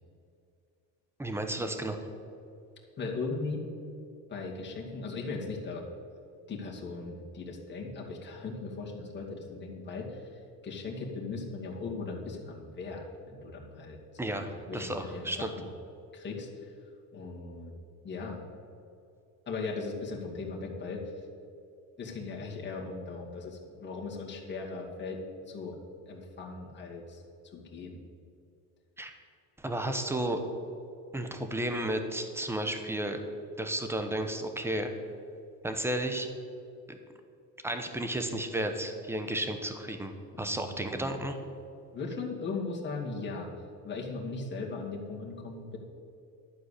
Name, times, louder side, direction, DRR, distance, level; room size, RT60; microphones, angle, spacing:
voice 1, 1.2-2.0 14.2-15.5 29.0-29.1 29.6-30.4 31.1-33.2 33.6-34.9 35.6-36.3 36.9-37.0 37.6-41.4, right 1 dB, 5° right, 6 dB, 1.0 m, -33 dB
voice 2, 3.0-3.6 4.3-5.9 6.5-15.5 16.1-16.7 17.1-18.4 19.5-21.1 22.0-25.2 25.5-25.8 26.1-27.2 27.5-28.0 40.4-41.2 41.9-43.5 43.8-45.8, left 3 dB, 25° left, -2 dB, 2.3 m, -38 dB
11.5 x 4.7 x 8.3 m, 2.5 s
cardioid pair, 115°, 41 cm